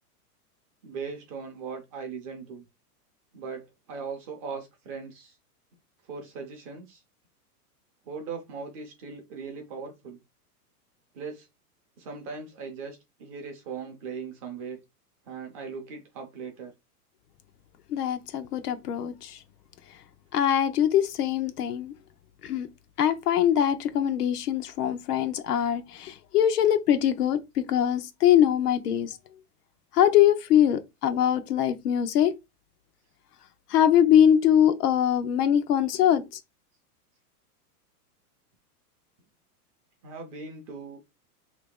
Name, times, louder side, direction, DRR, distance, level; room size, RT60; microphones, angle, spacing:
voice 1, 0.8-2.6 3.3-5.4 6.0-7.0 8.1-10.2 11.1-11.5 12.0-14.8 15.3-16.7 40.0-41.0, right 5 dB, 25° right, 0.5 m, -39 dB
voice 2, 17.9-19.4 20.3-21.9 22.4-22.7 23.0-29.2 29.9-32.3 33.7-36.2, left 10 dB, 80° left, 0.8 m, -22 dB
3.0 x 2.9 x 3.6 m
supercardioid pair, 160°, 46 cm